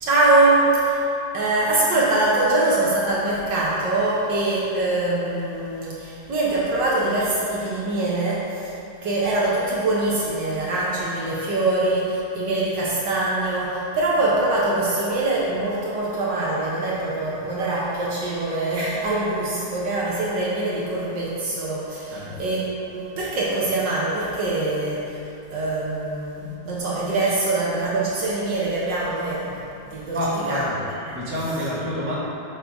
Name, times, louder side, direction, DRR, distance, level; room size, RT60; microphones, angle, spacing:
voice 1, 0.0-1.0 1.3-8.7 9.0-25.2 25.5-30.2 30.5-30.6 31.1-31.2, right 2 dB, 65° right, -6 dB, 1.4 m, -23 dB
voice 2, 22.1-22.4 30.1-32.1, equal, 5° right, -9 dB, 1.1 m, -28 dB
6.5 x 4.2 x 4.6 m, 2.7 s
omnidirectional pair, 2.3 m